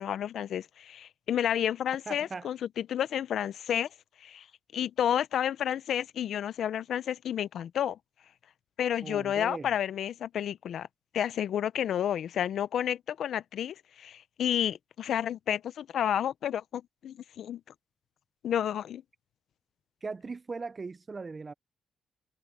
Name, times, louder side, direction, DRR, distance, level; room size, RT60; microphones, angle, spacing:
voice 1, 0.0-3.9 4.2-4.5 4.7-8.0 8.8-10.9 11.1-17.6 18.4-19.0, left 10 dB, 70° left, 0.7 m, -31 dB
voice 2, 2.1-2.5 9.0-9.7 20.0-21.5, right 4 dB, 35° right, 0.6 m, -39 dB
cardioid pair, 75°, 0 cm